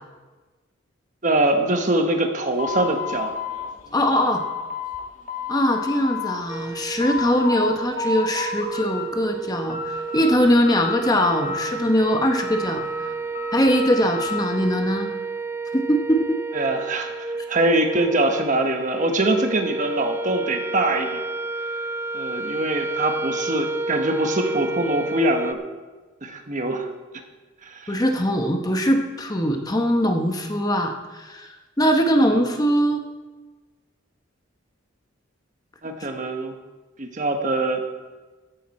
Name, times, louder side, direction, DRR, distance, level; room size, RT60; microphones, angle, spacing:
voice 1, 1.2-3.4 16.5-21.2 22.1-25.6 26.2-26.9 27.6-28.0 35.8-36.5 37.0-38.0, right 2 dB, 40° right, 4 dB, 1.2 m, -23 dB
sound 1, 2.6-5.0 5.3-6.4 6.7-7.7 8.0-9.0 9.4-10.4 10.7-11.9 12.4-14.5, left 5 dB, 35° left, 1.6 m, -31 dB
voice 2, 3.9-4.4 5.5-13.1 13.5-15.1 15.7-16.2 27.9-31.5 31.8-33.0, equal, 20° left, 4 dB, 0.9 m, -21 dB
sound 2, 6.5-25.5, right 3 dB, 10° right, 0.3 m, -31 dB
15.0 x 11.0 x 4.3 m, 1.3 s
head